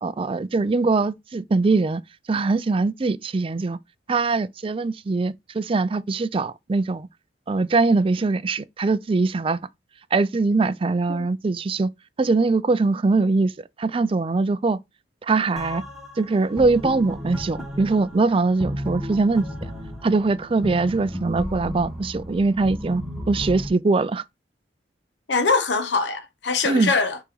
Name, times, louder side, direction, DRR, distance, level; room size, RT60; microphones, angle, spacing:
voice 1, 0.0-2.0 2.3-3.8 4.1-7.1 7.5-9.6 10.1-11.9 12.2-13.5 13.8-14.8 15.2-15.8 16.2-19.7 20.0-23.0 23.3-24.2 26.6-26.9, right 3 dB, 30° right, 0.4 m, -22 dB
sound 1, 15.6-23.7, equal, ahead, 1.4 m, -34 dB
voice 2, 25.3-27.2, left 4 dB, 70° left, 0.9 m, -23 dB
5.5 x 4.9 x 4.0 m
head